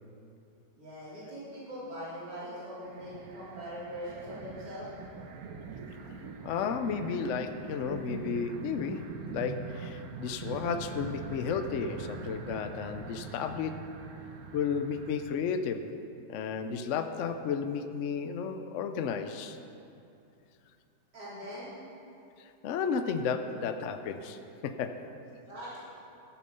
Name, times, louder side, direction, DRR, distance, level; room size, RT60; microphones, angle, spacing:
voice 1, 0.8-4.9 21.1-21.7 25.5-25.8, equal, 85° right, -10 dB, 3.7 m, -41 dB
sound 1, 2.8-15.2, right 4 dB, 65° right, 1.2 m, -42 dB
voice 2, 6.4-13.9 14.5-15.9 16.3-19.6 22.4-25.1, left 6 dB, 65° left, 8 dB, 0.7 m, -33 dB
14.0 x 7.3 x 5.5 m, 2.6 s
omnidirectional pair, 1.8 m